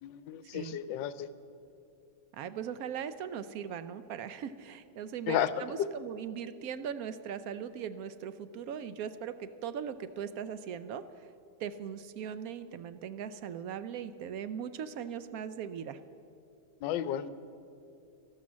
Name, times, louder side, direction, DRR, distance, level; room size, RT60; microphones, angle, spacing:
voice 1, 0.0-1.3 5.3-5.5 5.8-5.9 16.8-17.3, left 11 dB, 80° left, 15 dB, 1.3 m, -32 dB
voice 2, 2.3-11.0 11.6-16.0, right 8 dB, 70° right, 12 dB, 0.8 m, -39 dB
12.5 x 12.0 x 7.3 m, 2.6 s
omnidirectional pair, 2.0 m